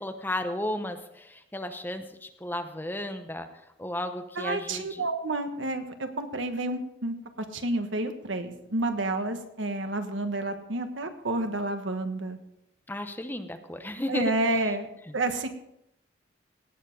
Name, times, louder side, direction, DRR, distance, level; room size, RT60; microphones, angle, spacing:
voice 1, 0.0-3.5 3.8-5.0 12.9-14.7, left 1 dB, 10° left, 7 dB, 0.8 m, -34 dB
voice 2, 4.4-7.1 7.5-12.4 14.1-14.9 15.1-15.5, right 2 dB, 85° right, 7 dB, 1.4 m, -30 dB
18.0 x 7.2 x 5.3 m, 0.80 s
head